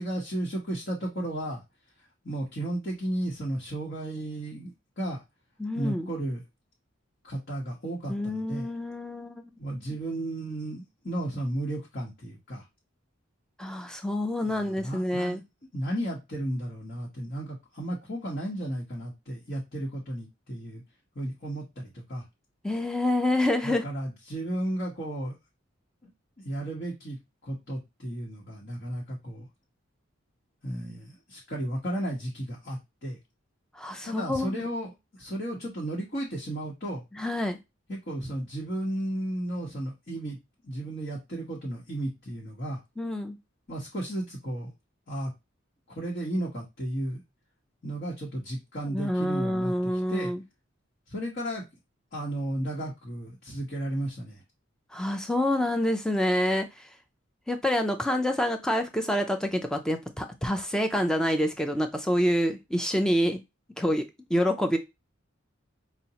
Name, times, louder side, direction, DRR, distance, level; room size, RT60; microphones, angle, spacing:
voice 1, 0.0-1.6 2.2-5.2 5.7-6.4 7.2-8.7 9.6-12.6 14.5-15.4 15.7-20.8 21.2-22.2 23.6-25.3 26.0-26.1 26.4-27.2 27.4-29.5 30.6-33.2 34.0-34.9 35.2-37.0 37.9-40.4 40.6-42.8 43.7-44.7 45.1-45.3 45.9-47.2 47.8-50.3 51.1-51.6 52.1-54.4, right 1 dB, 50° left, 1.0 m, -34 dB
voice 2, 5.6-6.1 8.1-9.5 13.6-15.4 22.6-23.9 33.8-34.6 37.1-37.6 43.0-43.4 48.9-50.4 54.9-56.7 57.5-63.4 63.8-64.0 64.3-64.8, left 1 dB, 5° left, 0.4 m, -27 dB
5.1 x 2.1 x 2.8 m
head